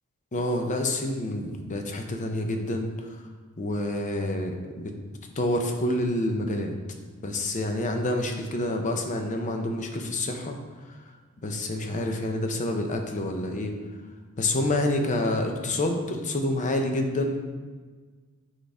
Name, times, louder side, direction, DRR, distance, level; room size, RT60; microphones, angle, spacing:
voice 1, 0.3-3.2 3.6-4.9 5.4-6.8 7.2-10.6 10.8-11.1 11.4-13.8 14.4-17.4, left 1 dB, 35° left, 4 dB, 0.6 m, -28 dB
6.4 x 3.5 x 4.9 m, 1.4 s
head